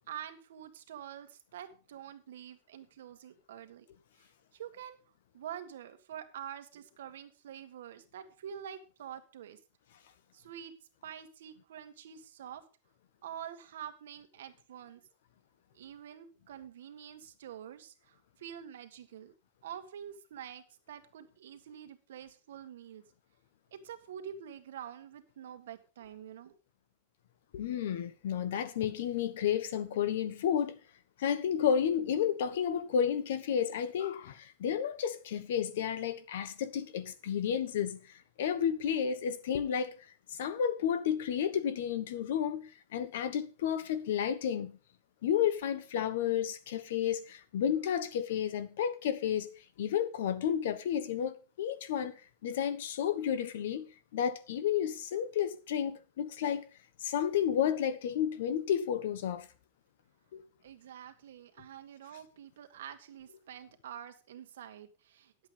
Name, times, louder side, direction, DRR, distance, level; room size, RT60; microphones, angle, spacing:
voice 1, 0.0-3.9 4.5-5.0 5.3-9.6 10.3-10.7 11.0-12.6 13.2-15.0 15.8-19.3 19.6-23.0 23.7-26.5 60.6-65.3, right 9 dB, 85° right, 1.6 m, -47 dB
voice 2, 27.5-30.8 31.2-39.9 40.3-44.8 45.2-49.5 49.8-56.6 57.0-59.5 60.3-60.4, left 8 dB, 70° left, 1.3 m, -32 dB
11.0 x 8.0 x 5.2 m
supercardioid pair, 170°, 0 cm